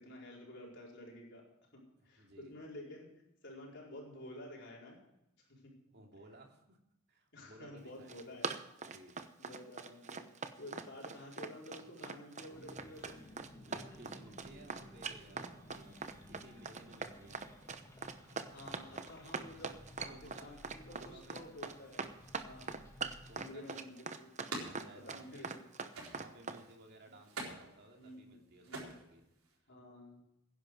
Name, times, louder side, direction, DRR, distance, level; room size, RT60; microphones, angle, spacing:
voice 1, 0.0-1.5 1.7-3.1 3.4-5.0 5.5-5.7 7.3-8.5 9.4-13.2 18.5-20.1 20.4-22.0 22.4-22.7 23.3-24.3 24.9-25.5 27.9-28.3 28.6-28.9 29.7-30.2, left 1 dB, 55° left, -3 dB, 4.7 m, -51 dB
voice 2, 2.2-2.5 5.4-5.5 5.9-6.8 7.1-8.2 8.8-9.2 13.7-17.4 20.1-20.6 20.8-21.5 23.3-23.8 24.5-25.5 26.1-29.2 29.6-29.7, right 1 dB, 50° right, 1 dB, 2.7 m, -58 dB
Run, 7.9-26.6, right 4 dB, 35° right, 0.8 m, -42 dB
sound 1, 12.5-23.3, left 1 dB, 15° left, 2.2 m, -57 dB
sound 2, 23.3-25.6 25.9-26.7 27.2-29.6, right 2 dB, 85° right, 4.2 m, -47 dB
16.5 x 10.5 x 4.7 m, 0.88 s
head